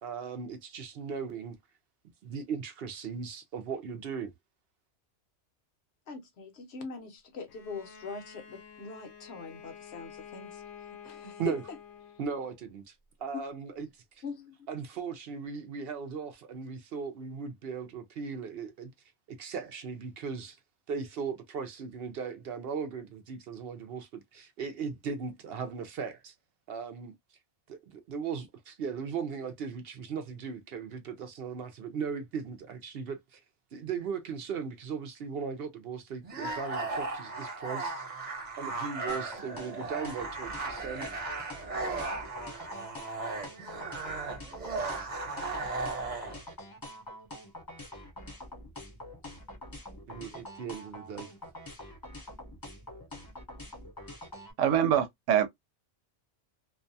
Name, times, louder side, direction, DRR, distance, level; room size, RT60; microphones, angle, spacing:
voice 1, 0.0-1.6 2.2-4.3 11.4-11.6 12.2-12.9 13.2-14.2 14.7-18.9 19.3-20.6 20.9-26.3 26.7-27.1 27.7-33.4 33.7-38.0 38.6-41.1 50.1-51.3, right 6 dB, 65° right, 0.7 m, -38 dB
voice 2, 6.1-10.6 10.9-11.8 13.3-13.4 14.2-14.7, left 4 dB, 65° left, 1.0 m, -42 dB
Bowed string instrument, 7.5-12.6, left 7 dB, 85° left, 1.0 m, -49 dB
sound 1, 36.2-46.4, right 3 dB, 40° right, 1.0 m, -36 dB
sound 2, 39.1-54.5, left 1 dB, 25° left, 0.6 m, -45 dB
voice 3, 54.6-55.5, right 9 dB, 85° right, 1.0 m, -24 dB
2.5 x 2.2 x 2.6 m
omnidirectional pair, 1.3 m